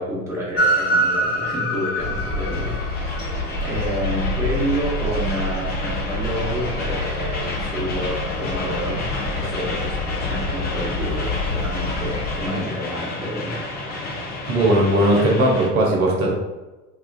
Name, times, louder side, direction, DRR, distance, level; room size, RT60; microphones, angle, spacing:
voice 1, 0.0-9.1 9.3-13.6, equal, 5° right, -7 dB, 0.9 m, -29 dB
Train, 0.6-15.7, equal, 25° left, 0.5 m, -28 dB
sound 1, 2.0-12.3, left 2 dB, 50° left, 1.2 m, -28 dB
voice 2, 14.5-16.3, right 1 dB, 70° right, -2 dB, 0.7 m, -18 dB
2.3 x 2.3 x 2.3 m, 1.1 s
figure-of-eight pair, 65°, 43 cm